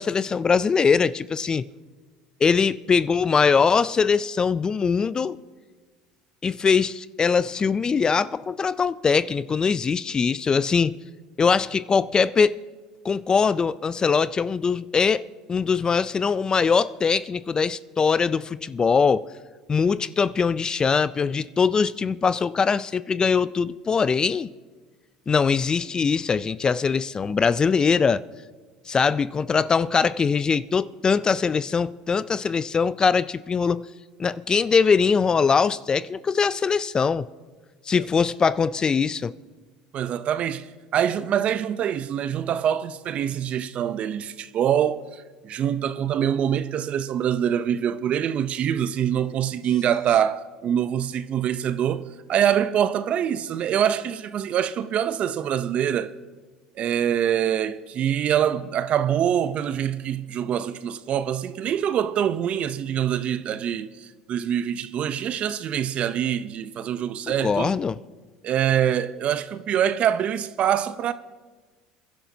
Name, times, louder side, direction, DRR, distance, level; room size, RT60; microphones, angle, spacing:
voice 1, 0.0-1.7 2.4-5.4 6.4-10.9 11.4-12.6 13.0-19.3 19.7-24.5 25.3-28.3 28.9-33.9 34.2-37.3 37.9-39.3 67.3-68.0, left 5 dB, 30° left, 0.4 m, -22 dB
voice 2, 39.9-40.7 40.9-56.1 56.8-67.7 68.4-71.1, right 9 dB, 50° right, 0.6 m, -25 dB
27.5 x 11.5 x 2.8 m
hypercardioid pair, 80°, 3 cm